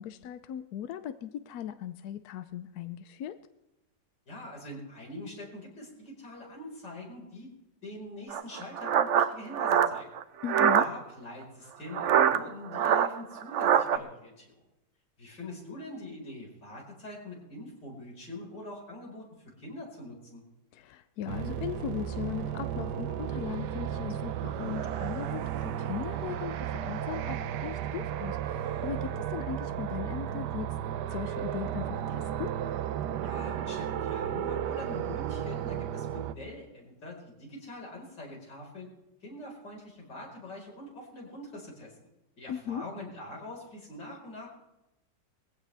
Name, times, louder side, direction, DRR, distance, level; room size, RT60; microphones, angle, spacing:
voice 1, 0.0-3.4 10.4-10.9 20.7-30.7 31.1-32.5 42.5-42.8, left 10 dB, 70° left, 11 dB, 1.1 m, -38 dB
voice 2, 4.3-7.5 7.8-10.1 10.8-14.6 15.2-20.4 33.2-38.9 39.2-41.9 42.4-44.5, left 1 dB, 85° left, -2 dB, 5.4 m, -44 dB
sound 1, 8.3-10.9 11.9-14.0, right 8 dB, 60° right, 0.8 m, -24 dB
sound 2, 21.3-36.3, right 10 dB, 80° right, 1.3 m, -34 dB
21.5 x 15.5 x 3.4 m, 0.94 s
omnidirectional pair, 1.8 m